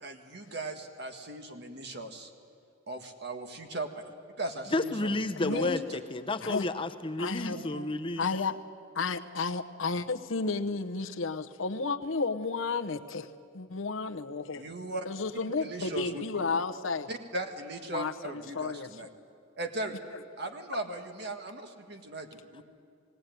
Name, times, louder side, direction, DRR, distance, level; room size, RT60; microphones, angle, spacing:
voice 1, 0.0-2.3 2.9-3.9 4.4-6.0 7.5-7.9 14.5-15.1 15.5-16.2 17.1-19.1 19.6-20.0 20.4-22.6, right 2 dB, 55° right, 5 dB, 1.7 m, -38 dB
voice 2, 4.7-8.3, left 2 dB, 25° left, 8 dB, 0.8 m, -31 dB
voice 3, 5.4-5.8 6.4-6.7 7.2-7.6 8.2-8.6 8.9-13.3 13.5-14.6 15.0-17.1 17.9-18.9, left 4 dB, 80° left, 7 dB, 0.9 m, -32 dB
19.5 x 17.5 x 9.2 m, 2.4 s
head